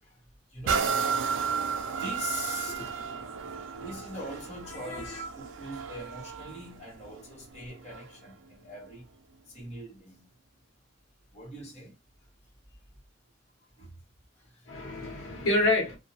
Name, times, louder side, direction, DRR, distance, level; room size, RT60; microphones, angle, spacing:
voice 1, 0.5-1.0 2.0-2.9 3.3-3.5 3.7-9.0 9.5-10.3 11.3-11.9 13.6-13.9 14.4-14.7, left 1 dB, 35° left, 1.1 m, -42 dB
sound 1, 0.7-8.3 8.9-9.0, right 6 dB, 70° right, 0.4 m, -33 dB
voice 2, 2.7-3.5 4.8-5.2 14.7-16.0, left 2 dB, 90° left, 0.9 m, -30 dB
2.6 x 2.2 x 2.8 m
head